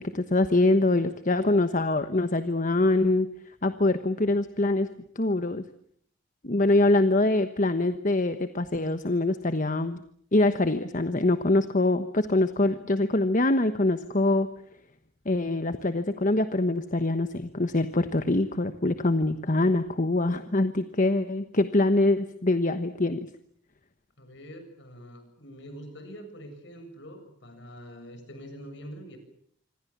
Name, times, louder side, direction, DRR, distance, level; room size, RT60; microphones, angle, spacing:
voice 1, 0.0-3.3 3.6-4.9 5.1-5.6 6.4-10.0 10.3-14.5 15.2-23.3, left 2 dB, 40° left, 10 dB, 1.2 m, -24 dB
voice 2, 24.2-29.2, equal, 60° left, 7 dB, 7.4 m, -44 dB
27.0 x 26.0 x 7.4 m, 0.65 s
head